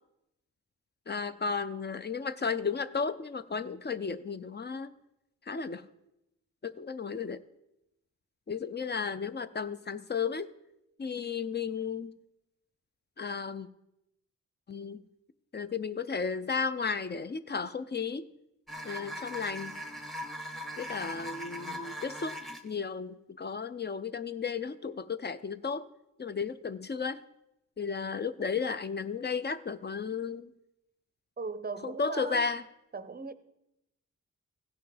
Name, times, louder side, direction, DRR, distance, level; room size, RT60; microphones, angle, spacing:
voice 1, 1.1-4.9 5.5-5.8 6.6-7.4 8.5-10.5 11.0-12.1 13.2-13.7 14.7-15.0 15.5-18.3 18.8-19.7 20.8-22.4 22.6-25.9 26.2-27.2 27.8-30.5 31.8-32.6, left 5 dB, 35° left, 0.4 m, -34 dB
sound 1, 18.7-22.8, equal, ahead, 0.8 m, -40 dB
voice 2, 31.4-32.5 32.9-33.3, right 4 dB, 30° right, 0.6 m, -38 dB
16.0 x 5.7 x 5.0 m
wide cardioid pair, 115°, 32 cm